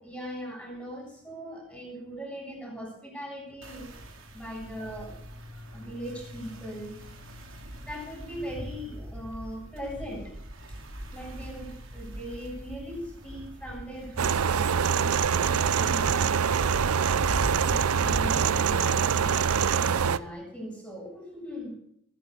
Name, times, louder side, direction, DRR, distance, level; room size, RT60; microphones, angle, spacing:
voice 1, 0.0-3.9 4.3-5.1 5.5-7.0 7.8-10.3 11.1-16.7 17.6-21.8, equal, 5° left, 0 dB, 7.6 m, -40 dB
sound 1, 3.6-18.6, equal, 60° right, 2.9 m, -40 dB
sound 2, 14.2-20.2, right 7 dB, 85° right, 0.6 m, -24 dB
19.5 x 9.5 x 6.6 m, 0.70 s
head